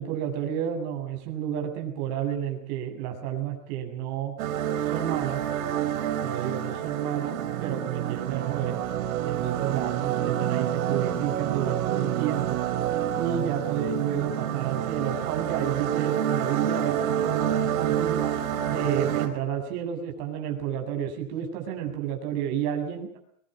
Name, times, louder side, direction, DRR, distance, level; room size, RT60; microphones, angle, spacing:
voice 1, 0.0-4.3 4.8-5.4 6.2-8.8 9.3-12.6 13.1-18.2 18.7-23.2, right 9 dB, 45° right, 5 dB, 7.8 m, -31 dB
sound 1, 4.4-19.3, right 10 dB, 65° right, 4.7 m, -28 dB
23.0 x 22.0 x 7.8 m, 0.68 s
supercardioid pair, 140°, 44 cm